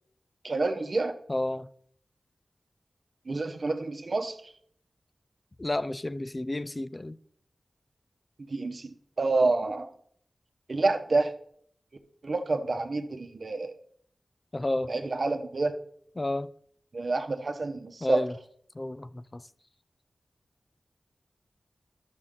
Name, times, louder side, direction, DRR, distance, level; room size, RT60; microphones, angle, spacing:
voice 1, 0.4-1.1 3.3-4.3 8.5-9.9 10.7-11.3 12.2-13.7 14.9-15.7 16.9-18.3, right 3 dB, 65° right, 1.0 m, -28 dB
voice 2, 1.3-1.7 5.6-7.2 14.5-14.9 16.2-16.5 18.0-18.3 18.8-19.4, left 1 dB, 30° left, 0.4 m, -31 dB
12.0 x 6.5 x 3.7 m
wide cardioid pair, 55°, 0 cm